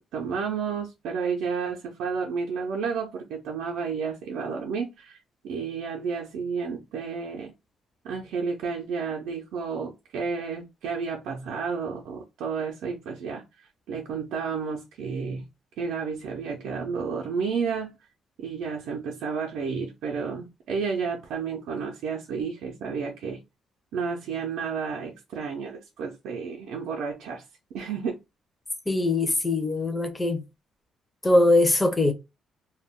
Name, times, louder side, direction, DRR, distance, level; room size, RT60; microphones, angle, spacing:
voice 1, 0.1-5.2 5.4-7.5 8.0-15.5 15.8-17.9 18.4-23.4 23.9-27.4 27.7-28.2, right 5 dB, 90° right, 0.4 m, -31 dB
voice 2, 28.9-30.4 31.2-32.1, left 2 dB, 15° left, 0.5 m, -22 dB
2.2 x 2.1 x 3.4 m
cardioid pair, 125°, 0 cm